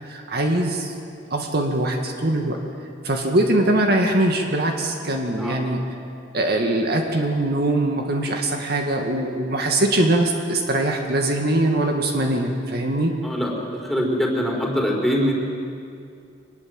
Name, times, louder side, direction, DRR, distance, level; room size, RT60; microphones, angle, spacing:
voice 1, 0.0-0.9 1.3-2.6 3.0-5.8 6.3-13.1, right 1 dB, 60° right, 2 dB, 2.1 m, -22 dB
voice 2, 13.2-15.3, equal, ahead, -1 dB, 4.3 m, -23 dB
25.0 x 20.5 x 7.8 m, 2.5 s
head